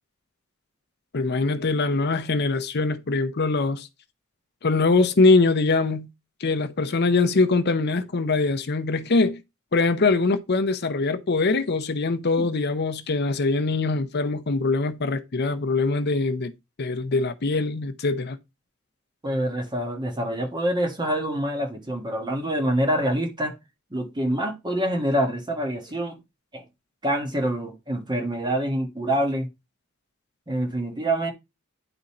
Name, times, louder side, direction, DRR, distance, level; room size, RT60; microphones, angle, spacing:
voice 1, 1.1-3.9 4.6-6.1 6.4-9.4 9.7-16.5 16.8-18.4, left 3 dB, 55° left, 0.7 m, -23 dB
voice 2, 19.2-23.5 23.9-26.2 26.5-26.6 27.0-29.5 30.5-31.3, right 1 dB, 20° right, 1.3 m, -26 dB
10.0 x 3.9 x 4.2 m
head